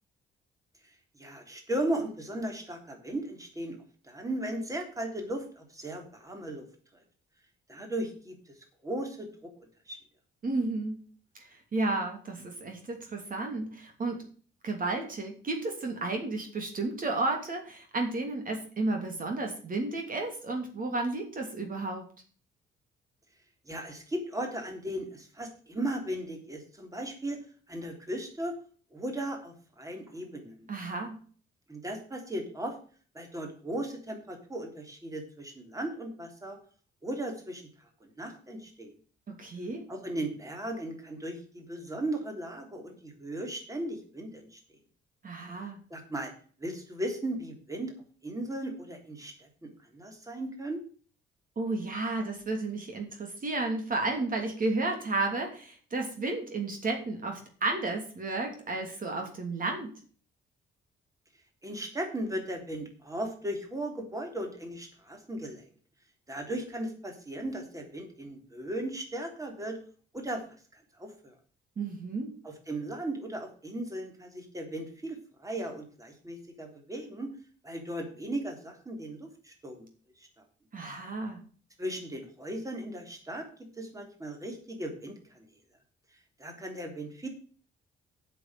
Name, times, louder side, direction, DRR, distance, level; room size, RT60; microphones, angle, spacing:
voice 1, 1.2-3.8 4.0-6.6 7.7-8.5 8.8-9.5 9.9-10.0 23.7-27.4 27.7-28.5 28.9-30.6 31.7-32.7 33.1-36.6 37.0-38.9 39.9-44.6 45.9-46.3 46.6-47.9 48.2-50.8 61.6-65.6 66.3-69.8 70.1-70.4 71.0-71.3 72.4-77.3 77.6-79.9 80.2-80.3 81.8-83.4 83.8-85.4 86.4-87.3, right 1 dB, 15° right, 3 dB, 3.4 m, -37 dB
voice 2, 10.4-11.0 11.4-14.2 14.6-22.0 30.7-31.2 39.3-39.9 45.2-45.8 51.6-59.9 71.8-72.3 80.7-81.4, right 2 dB, 45° right, 3 dB, 3.0 m, -32 dB
8.0 x 7.1 x 8.0 m, 0.43 s
cardioid pair, 90°, 20 cm